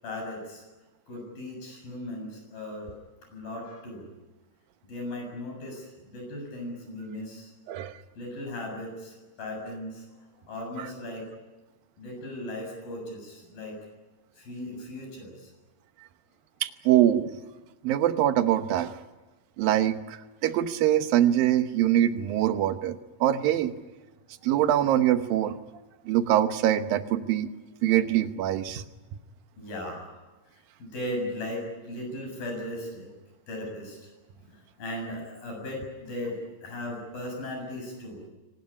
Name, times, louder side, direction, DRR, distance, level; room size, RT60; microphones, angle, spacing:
voice 1, 0.0-0.6 1.1-2.9 3.3-4.1 4.9-7.5 8.2-10.1 10.5-11.3 12.0-13.8 14.4-15.5 29.6-30.2 30.8-33.1 33.5-34.1 34.4-38.2, left 1 dB, 90° left, 2 dB, 9.0 m, -37 dB
voice 2, 16.6-17.3 17.8-18.9 19.6-23.7 24.4-25.6 26.1-27.5 27.8-28.8, right 12 dB, 90° right, 10 dB, 2.8 m, -24 dB
24.5 x 19.0 x 9.9 m, 1.2 s
omnidirectional pair, 4.0 m